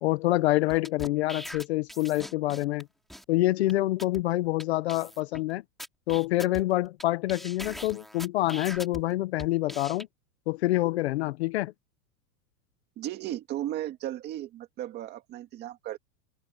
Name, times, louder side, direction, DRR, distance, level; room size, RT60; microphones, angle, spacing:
voice 1, 0.0-2.9 3.3-5.6 6.1-10.1 10.5-11.7, left 17 dB, 45° left, 0.7 m, -26 dB
sound 1, 0.7-2.8 3.1-3.2 3.7-3.8 4.0-4.2 4.6-4.7 4.9-5.4 5.8-7.0 7.3-9.0 9.4-10.0, equal, ahead, 3.2 m, -41 dB
voice 2, 13.0-16.0, right 13 dB, 20° right, 2.1 m, -35 dB
supercardioid pair, 175°, 46 cm